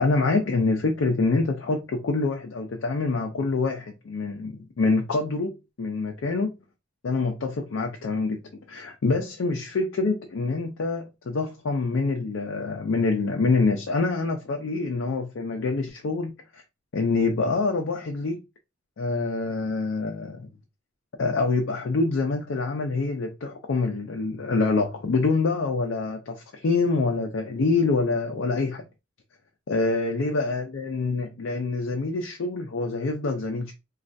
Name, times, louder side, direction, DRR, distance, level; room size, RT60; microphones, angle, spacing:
voice 1, 0.0-6.5 7.0-8.4 8.7-16.6 16.9-18.4 19.0-20.5 21.2-28.8 29.7-33.7, left 3 dB, 75° left, 0.5 m, -26 dB
3.2 x 2.3 x 2.5 m
head